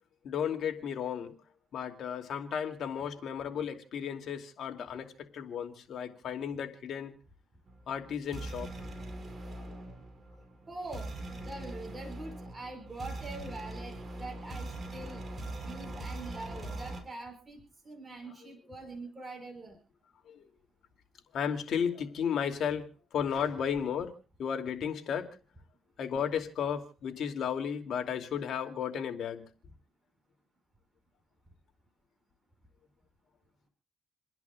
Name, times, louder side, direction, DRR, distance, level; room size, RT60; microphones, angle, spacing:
voice 1, 0.2-1.4 1.7-7.1 7.9-8.7 9.7-9.8 20.3-20.4 21.3-25.4 26.0-29.5, left 8 dB, 65° left, 2.7 m, -34 dB
sound 1, 7.7-17.0, right 2 dB, 35° right, 5.4 m, -42 dB
voice 2, 10.7-15.2 15.6-19.8, right 2 dB, 20° right, 5.6 m, -44 dB
29.5 x 11.0 x 2.4 m
cardioid pair, 90°, 0 cm